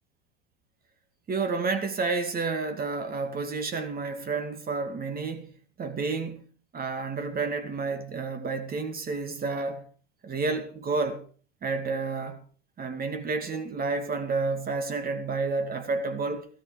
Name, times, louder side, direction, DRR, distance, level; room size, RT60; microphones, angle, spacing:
voice 1, 1.3-5.5 5.8-6.4 6.7-9.9 10.2-11.3 11.6-12.4 12.8-16.5, right 4 dB, 30° right, 2.2 m, -30 dB
13.5 x 13.0 x 4.9 m
hypercardioid pair, 100°, 32 cm